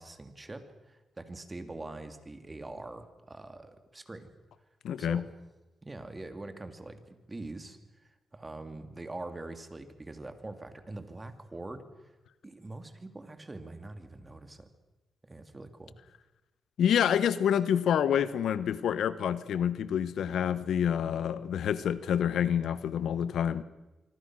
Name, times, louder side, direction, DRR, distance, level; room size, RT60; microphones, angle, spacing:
voice 1, 0.0-4.3 5.0-5.2 5.8-11.8 12.4-14.7 15.2-16.0, right 2 dB, 25° right, 2.9 m, -44 dB
voice 2, 4.8-5.2 16.8-23.6, left 9 dB, 85° left, 1.0 m, -27 dB
25.0 x 25.0 x 6.3 m
cardioid pair, 85°, 0 cm